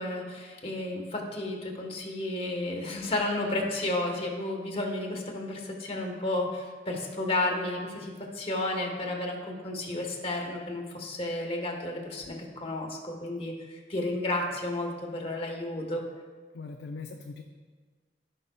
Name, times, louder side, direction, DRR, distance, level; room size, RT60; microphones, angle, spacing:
voice 1, 0.0-16.0, left 2 dB, 35° left, 0 dB, 1.2 m, -32 dB
voice 2, 16.5-17.4, left 4 dB, 65° left, 3 dB, 0.4 m, -40 dB
15.5 x 5.6 x 2.3 m, 1.4 s
head